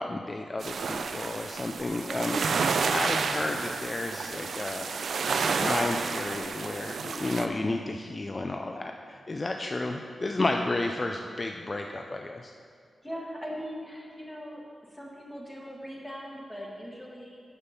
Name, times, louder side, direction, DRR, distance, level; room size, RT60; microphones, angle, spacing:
voice 1, 0.0-2.6 2.9-4.9 5.5-12.5, left 2 dB, 25° left, 3 dB, 0.3 m, -32 dB
sound 1, 0.6-7.5, right 5 dB, 70° right, 0.4 m, -30 dB
voice 2, 13.0-14.6 14.9-17.4, equal, 10° left, -3 dB, 1.4 m, -40 dB
7.0 x 6.8 x 5.7 m, 2.2 s
wide cardioid pair, 150°, 0 cm